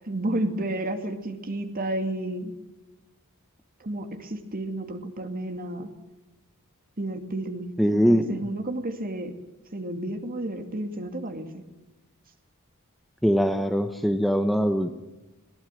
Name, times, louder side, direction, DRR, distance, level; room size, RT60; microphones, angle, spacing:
voice 1, 0.1-2.5 3.8-5.9 7.0-7.7 8.0-9.4 9.7-11.5, right 1 dB, 40° right, 6 dB, 2.4 m, -31 dB
voice 2, 7.8-8.4 13.2-14.9, equal, ahead, 7 dB, 1.0 m, -22 dB
21.0 x 19.5 x 9.2 m, 1.0 s
head